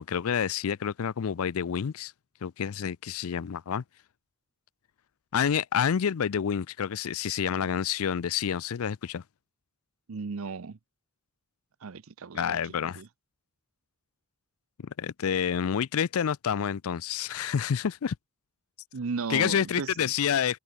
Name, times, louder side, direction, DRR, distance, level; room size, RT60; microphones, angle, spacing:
voice 1, 0.0-2.1 2.4-3.8 5.3-9.2 12.3-13.0 14.8-18.2 19.3-20.6, left 8 dB, 75° left, 0.5 m, -28 dB
voice 2, 10.1-10.8 11.8-13.1 18.9-20.1, right 4 dB, 70° right, 0.6 m, -36 dB
open air
head